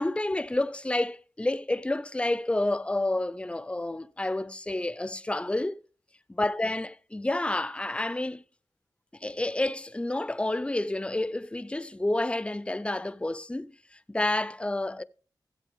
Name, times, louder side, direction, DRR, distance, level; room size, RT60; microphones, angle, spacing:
voice 1, 0.0-5.8 6.3-8.4 9.2-15.0, left 2 dB, 15° left, 0.5 m, -29 dB
14.5 x 7.8 x 3.5 m
cardioid pair, 55°, 7 cm